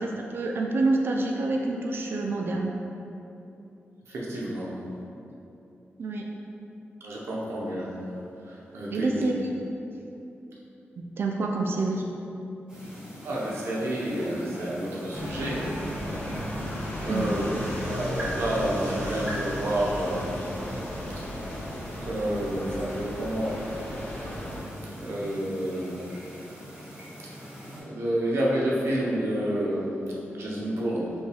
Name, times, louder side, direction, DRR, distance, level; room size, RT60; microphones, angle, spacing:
voice 1, 0.0-2.7 6.0-6.3 8.9-9.6 11.0-12.0 17.1-17.3, right 2 dB, 60° right, 0 dB, 0.3 m, -27 dB
voice 2, 4.1-4.7 7.0-7.9 8.5-9.2 13.2-15.6 16.4-16.7 17.0-17.4 17.8-20.4 22.0-23.6 25.0-26.1 27.9-29.9 30.3-31.1, right 1 dB, 90° right, -5 dB, 0.8 m, -29 dB
sound 1, 12.7-27.8, equal, 30° right, 1.4 m, -42 dB
sound 2, 15.1-24.6, left 1 dB, 50° left, 0.9 m, -35 dB
5.2 x 2.3 x 3.4 m, 2.9 s
wide cardioid pair, 145°, 4 cm